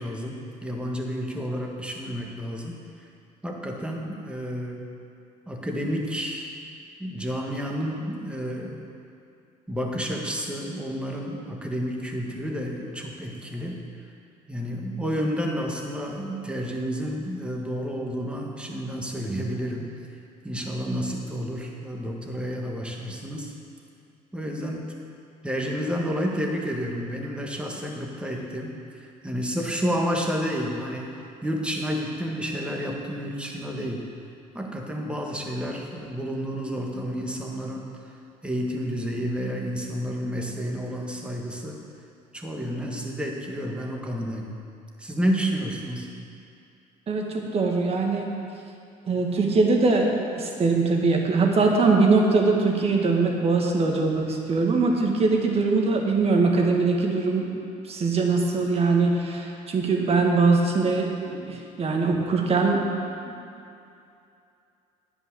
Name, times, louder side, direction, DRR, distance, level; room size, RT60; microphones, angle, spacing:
voice 1, 0.0-2.8 3.4-4.8 5.5-6.5 7.0-8.8 9.7-13.8 14.5-19.9 20.4-23.5 24.3-24.8 25.4-28.7 29.2-34.1 34.5-37.9 38.4-41.8 42.3-44.5 45.0-46.1, equal, 5° right, 0 dB, 1.6 m, -30 dB
voice 2, 47.1-48.3 49.1-57.6 57.9-62.9 63.2-63.3, right 3 dB, 40° right, 1 dB, 1.7 m, -22 dB
10.5 x 5.4 x 8.5 m, 2.6 s
supercardioid pair, 90°, 15 cm